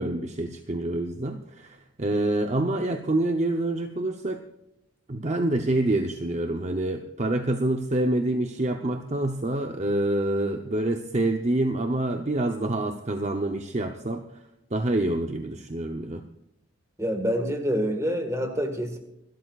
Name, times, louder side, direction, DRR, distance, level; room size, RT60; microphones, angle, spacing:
voice 1, 0.0-4.4 5.1-14.3 14.7-16.3, right 1 dB, 35° right, 5 dB, 0.7 m, -27 dB
voice 2, 17.0-19.0, equal, 15° right, 5 dB, 1.7 m, -27 dB
26.0 x 13.0 x 2.4 m, 0.84 s
head